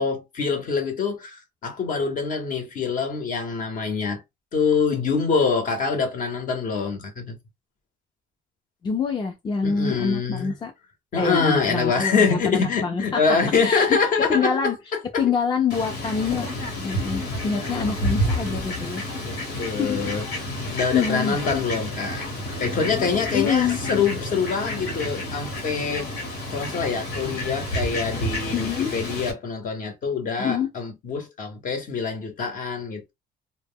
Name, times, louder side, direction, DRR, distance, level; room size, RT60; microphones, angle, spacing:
voice 1, 0.0-4.2 4.5-7.4 9.6-10.5 11.1-14.7 15.1-15.2 17.4-17.9 19.2-26.1 26.5-33.1, left 5 dB, 50° left, 0.9 m, -25 dB
voice 2, 8.8-10.7 11.2-13.2 13.6-14.0 14.3-14.8 15.2-16.5 16.8-19.0 19.6-20.1 20.5-21.4 23.3-23.8 28.5-28.9 30.4-30.7, left 6 dB, 25° left, 0.4 m, -25 dB
Fowl, 15.7-29.3, left 1 dB, 80° left, 1.1 m, -30 dB
2.1 x 2.0 x 3.5 m
cardioid pair, 110°, 17 cm